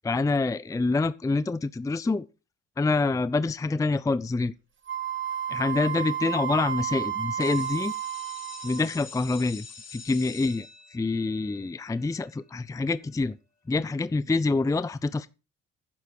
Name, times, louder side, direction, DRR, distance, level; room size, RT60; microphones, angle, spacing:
voice 1, 0.0-2.3 2.8-4.5 5.5-7.9 8.6-9.7 9.9-13.4 13.7-15.3, left 3 dB, 10° left, 0.5 m, -26 dB
Wind instrument woodwind instrument, 4.9-9.0, right 9 dB, 40° right, 2.1 m, -32 dB
sound 1, 7.4-13.0, left 5 dB, 55° left, 4.0 m, -46 dB
11.0 x 10.0 x 4.6 m
cardioid pair, 90°, 30 cm